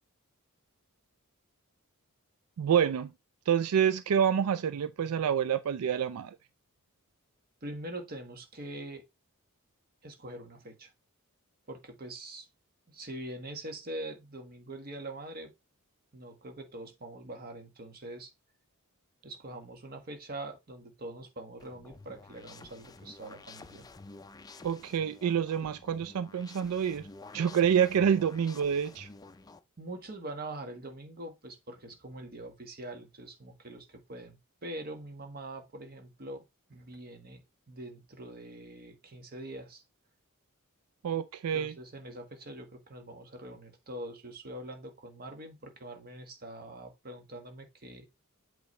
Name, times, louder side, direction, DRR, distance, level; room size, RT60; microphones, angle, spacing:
voice 1, 2.6-3.1 3.5-6.4 24.6-27.1 27.3-29.1 41.0-41.7, right 8 dB, 80° right, 0.4 m, -27 dB
voice 2, 7.6-9.0 10.0-10.9 11.7-12.5 12.9-15.5 16.1-18.3 19.2-23.9 29.8-39.8 41.5-48.1, right 1 dB, 45° right, 1.4 m, -43 dB
sound 1, 21.6-29.6, left 3 dB, 15° left, 0.4 m, -51 dB
8.1 x 3.9 x 3.2 m
head